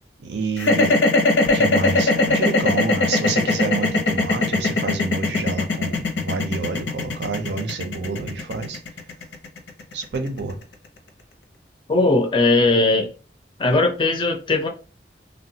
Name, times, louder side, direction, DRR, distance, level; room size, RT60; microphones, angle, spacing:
voice 1, 0.2-0.9 1.5-8.8 9.9-10.6, right 4 dB, 70° right, 0.6 m, -28 dB
sound 1, 0.6-10.7, left 3 dB, 90° left, 0.7 m, -20 dB
voice 2, 11.9-13.1 13.6-14.7, left 2 dB, 25° left, 0.5 m, -18 dB
3.3 x 2.2 x 2.7 m
head